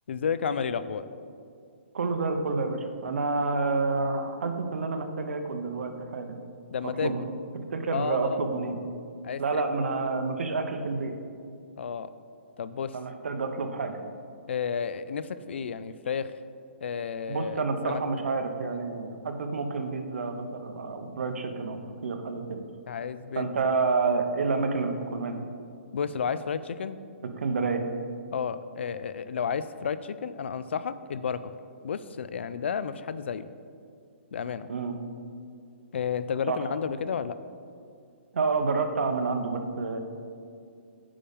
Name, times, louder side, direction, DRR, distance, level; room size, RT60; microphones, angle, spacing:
voice 1, 0.1-1.1 6.7-7.1 7.9-8.4 9.2-9.6 10.0-10.1 11.8-12.1 12.6-13.0 14.5-16.3 16.8-18.0 22.9-23.7 25.9-27.0 28.3-31.5 31.8-33.5 34.3-34.7 35.9-37.4, left 7 dB, 65° left, 14 dB, 0.3 m, -32 dB
voice 2, 1.9-6.3 7.0-7.2 7.7-8.8 9.4-11.1 12.9-14.0 17.3-22.6 23.4-25.5 27.4-27.8 34.7-34.9 36.5-36.6 38.3-40.0, right 4 dB, 80° right, 6 dB, 0.8 m, -29 dB
8.6 x 5.3 x 3.6 m, 2.3 s
hypercardioid pair, 175°, 7 cm